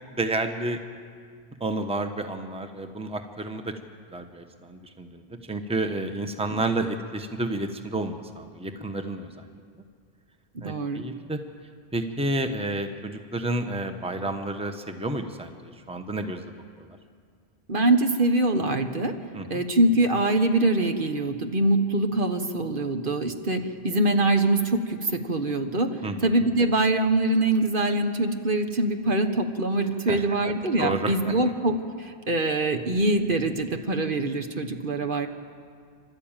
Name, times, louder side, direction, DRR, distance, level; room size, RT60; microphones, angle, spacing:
voice 1, 0.2-0.8 1.6-3.7 4.1-9.5 10.6-11.4 11.9-17.0 19.3-19.6 26.0-26.3 30.1-31.1, right 2 dB, 5° right, 6 dB, 1.1 m, -31 dB
voice 2, 10.5-11.0 17.7-19.1 19.5-25.9 26.2-35.3, right 2 dB, 55° right, 6 dB, 1.4 m, -24 dB
29.0 x 12.5 x 9.0 m, 2.1 s
omnidirectional pair, 1.1 m